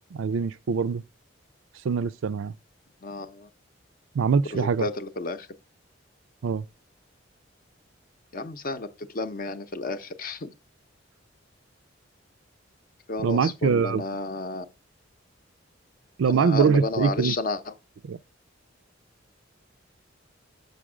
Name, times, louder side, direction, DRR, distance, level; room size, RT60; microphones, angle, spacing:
voice 1, 0.1-1.0 1.8-2.5 4.1-4.8 6.4-6.6 13.2-14.0 16.2-17.4 18.0-18.2, right 5 dB, 80° right, 0.4 m, -23 dB
voice 2, 3.0-3.5 4.5-5.5 8.3-10.5 13.1-14.7 16.3-17.7, left 3 dB, 50° left, 0.7 m, -32 dB
6.3 x 5.2 x 4.9 m
head